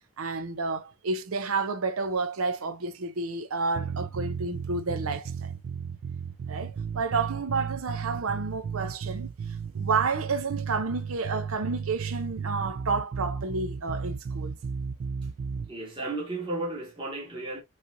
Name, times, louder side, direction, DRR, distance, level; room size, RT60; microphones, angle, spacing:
voice 1, 0.2-5.5 6.5-9.3 9.7-14.6, right 4 dB, 90° right, 0.7 m, -30 dB
sound 1, 3.7-15.7, right 6 dB, 60° right, 0.3 m, -34 dB
voice 2, 15.7-17.6, right 2 dB, 25° right, 1.5 m, -34 dB
5.5 x 3.3 x 2.5 m
head